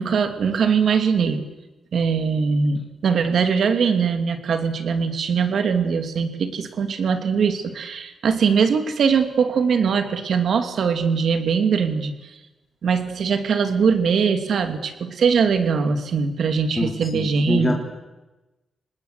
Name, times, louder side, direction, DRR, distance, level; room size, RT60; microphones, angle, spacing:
voice 1, 0.0-1.4 1.9-12.3 12.8-17.7, right 6 dB, 70° right, 8 dB, 2.6 m, -21 dB
voice 2, 16.8-17.7, left 1 dB, 20° left, 0 dB, 3.0 m, -25 dB
26.0 x 20.0 x 8.0 m, 1.1 s
cardioid pair, 95°, 0 cm